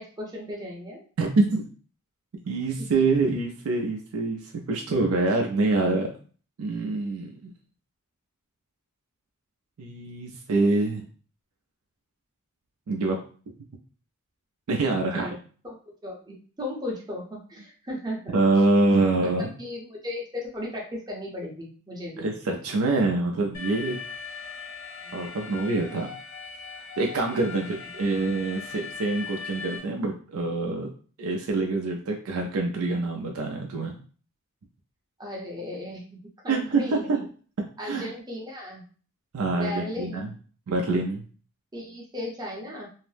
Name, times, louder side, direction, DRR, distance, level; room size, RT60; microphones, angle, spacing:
voice 1, 0.0-1.0 2.9-3.0 14.8-15.4 15.6-15.7 16.0-18.6 19.6-22.3 25.0-25.2 27.6-27.7 35.2-37.2 37.8-38.8 39.5-40.3 41.7-42.9, left 1 dB, 20° right, -2 dB, 0.7 m, -36 dB
voice 2, 1.2-1.7 2.4-6.1 6.6-7.5 9.8-11.0 12.9-13.2 14.7-15.3 18.3-19.5 22.2-24.0 25.1-26.1 27.0-30.9 31.2-34.0 36.5-37.3 37.8-38.1 39.3-40.3 40.7-41.2, right 3 dB, 70° right, 1 dB, 0.4 m, -25 dB
Alarm, 23.5-29.8, left 5 dB, 45° left, 0.9 m, -39 dB
2.6 x 2.0 x 3.2 m, 0.41 s
head